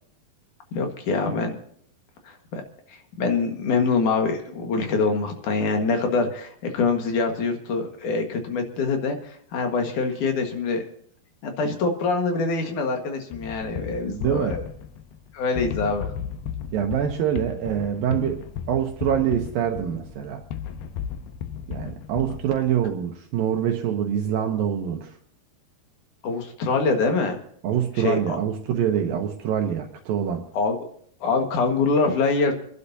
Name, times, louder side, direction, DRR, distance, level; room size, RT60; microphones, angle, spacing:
voice 1, 0.7-1.6 2.2-2.6 2.9-10.8 11.4-14.6 15.3-16.1 26.2-27.4 28.0-28.4 30.5-30.8 31.2-32.5, left 4 dB, 60° left, 4 dB, 2.9 m, -24 dB
sound 1, 13.3-22.9, left 8 dB, 75° left, 2.7 m, -35 dB
voice 2, 14.0-14.7 16.7-18.4 18.7-20.4 21.7-25.1 27.6-30.5, right 9 dB, 75° right, 3 dB, 2.6 m, -25 dB
28.0 x 11.5 x 2.8 m, 0.63 s
omnidirectional pair, 4.5 m